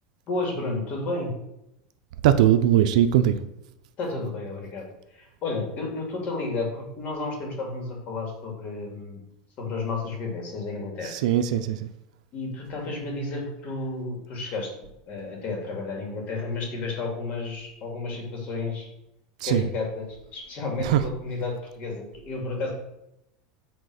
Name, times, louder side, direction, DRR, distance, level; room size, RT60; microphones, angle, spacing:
voice 1, 0.3-1.3 4.0-4.8 5.1-9.2 9.6-11.1 12.3-14.7 15.1-18.9 19.4-22.7, left 3 dB, 40° left, 3.0 m, -32 dB
voice 2, 2.2-3.4 11.0-11.9 19.4-19.7 20.8-21.0, right 11 dB, 80° right, 0.6 m, -20 dB
7.9 x 4.2 x 6.5 m
supercardioid pair, 145°, 4 cm